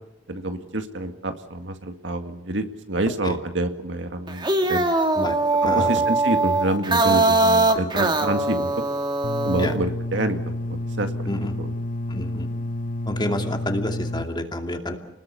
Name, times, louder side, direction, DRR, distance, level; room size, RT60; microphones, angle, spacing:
voice 1, 0.3-4.9 5.7-8.7 9.4-10.4 10.7-11.1 11.6-11.7, right 1 dB, 70° right, 6 dB, 2.1 m, -27 dB
sound 1, 4.3-9.8, right 2 dB, 25° right, 1.9 m, -21 dB
voice 2, 5.6-6.0 9.6-9.7 11.3-11.5 12.1-12.5 13.1-15.0, left 1 dB, 25° left, 4 dB, 2.5 m, -28 dB
sound 2, 9.2-14.2, left 1 dB, 45° left, 1.2 m, -30 dB
30.0 x 20.5 x 7.0 m, 0.85 s
head